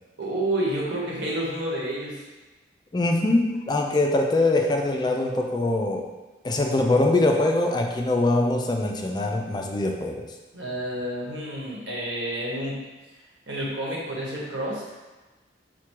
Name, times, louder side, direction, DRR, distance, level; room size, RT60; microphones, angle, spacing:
voice 1, 0.2-2.2 10.5-12.8 13.5-14.8, right 1 dB, 80° right, -4 dB, 1.1 m, -29 dB
voice 2, 2.9-6.1 6.4-10.3, left 2 dB, 25° left, 3 dB, 0.3 m, -23 dB
4.4 x 2.2 x 4.6 m, 1.2 s
head